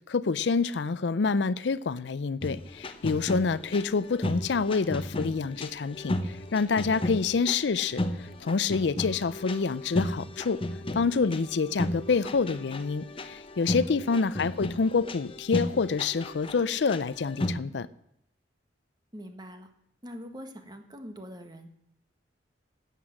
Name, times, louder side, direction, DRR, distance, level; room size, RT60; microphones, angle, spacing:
voice 1, 0.1-10.6 10.9-17.9, left 4 dB, 70° left, 17 dB, 0.5 m, -27 dB
sound 1, 2.4-17.6, left 1 dB, 30° left, 0.8 m, -35 dB
voice 2, 3.9-4.2 14.4-14.5 19.1-19.7 20.0-21.7, equal, 25° right, 6 dB, 1.5 m, -43 dB
13.0 x 8.3 x 7.6 m, 0.75 s
head